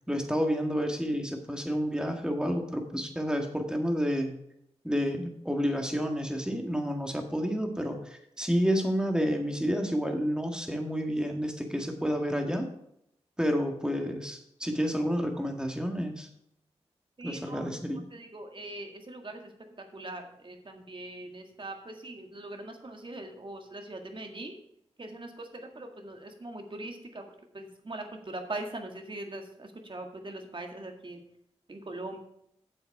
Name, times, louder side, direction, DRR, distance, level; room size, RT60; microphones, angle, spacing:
voice 1, 0.1-4.4 4.8-12.7 13.4-16.3 17.2-18.0, equal, 5° right, 4 dB, 1.8 m, -30 dB
voice 2, 17.2-19.5 19.9-24.6 25.0-27.2 27.5-31.2 31.7-32.2, right 2 dB, 45° right, 4 dB, 1.8 m, -41 dB
8.5 x 7.1 x 4.8 m, 0.75 s
cardioid pair, 45°, 11 cm